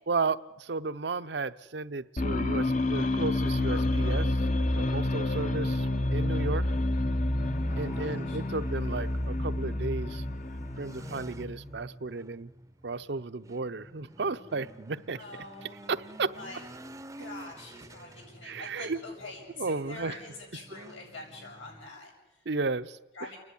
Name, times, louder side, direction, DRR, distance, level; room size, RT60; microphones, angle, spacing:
voice 1, 0.1-4.4 4.7-6.6 7.8-10.2 10.8-12.5 12.8-15.2 15.9-16.3 18.4-19.0 19.6-20.1 22.5-23.0, right 3 dB, 60° right, 12 dB, 0.7 m, -33 dB
sound 1, 2.2-11.8, left 1 dB, 40° left, 0.8 m, -29 dB
sound 2, 4.6-21.9, right 1 dB, 15° right, 0.6 m, -48 dB
voice 2, 7.7-8.4 15.2-15.8 16.3-16.6 17.2-22.4 23.1-23.4, left 2 dB, 90° left, -1 dB, 7.8 m, -45 dB
30.0 x 11.0 x 9.9 m, 1.1 s
head